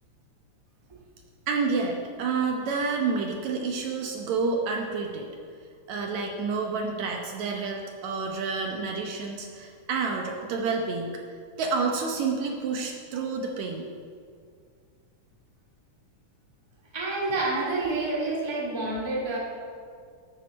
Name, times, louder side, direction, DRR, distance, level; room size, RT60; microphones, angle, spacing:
voice 1, 1.5-5.3 5.9-11.2 11.6-13.9, right 4 dB, 70° right, 1 dB, 2.1 m, -29 dB
voice 2, 16.9-19.4, right 2 dB, 10° right, -5 dB, 1.6 m, -28 dB
9.1 x 7.3 x 6.4 m, 2.2 s
omnidirectional pair, 3.5 m